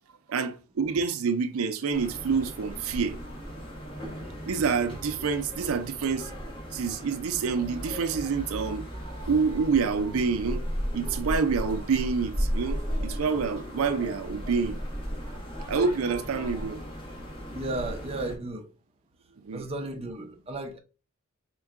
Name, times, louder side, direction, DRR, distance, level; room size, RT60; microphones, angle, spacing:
voice 1, 0.3-3.2 4.5-6.3 6.7-10.6 10.9-14.8 15.2-15.4 15.7-16.8 19.4-19.6, right 5 dB, 80° right, 0.5 m, -27 dB
sound 1, 1.9-18.4, equal, 25° left, 1.0 m, -35 dB
voice 2, 17.5-18.7 19.5-20.8, right 2 dB, 30° right, 0.5 m, -34 dB
4.6 x 2.2 x 3.5 m
head